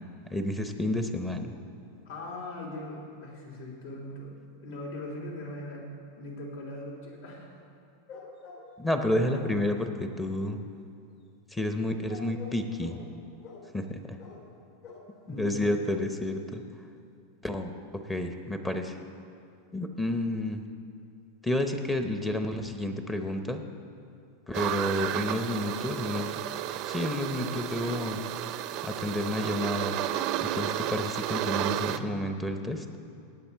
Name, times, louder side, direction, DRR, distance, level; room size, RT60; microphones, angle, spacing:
voice 1, 0.3-1.5 8.8-10.6 11.5-13.0 13.7-14.0 15.3-16.6 17.4-17.7 18.0-19.0 19.7-20.6 21.4-23.6 24.5-26.4 26.8-28.2 28.8-30.0 30.4-32.8, left 1 dB, 10° left, 6 dB, 0.7 m, -30 dB
voice 2, 2.0-4.3 4.6-5.9 6.2-7.5 15.3-15.8 31.8-32.1, left 1 dB, 75° left, -2 dB, 3.5 m, -40 dB
sound 1, 8.1-8.7 9.1-9.8 12.1-13.1 13.4-13.7 14.2-14.5 14.8-15.1 15.5-15.9 16.2-16.3 16.5-16.6, left 4 dB, 50° left, 2.1 m, -46 dB
sound 2, 24.5-32.0, right 12 dB, 45° right, 0.5 m, -32 dB
18.0 x 8.8 x 4.5 m, 2.5 s
supercardioid pair, 145°, 0 cm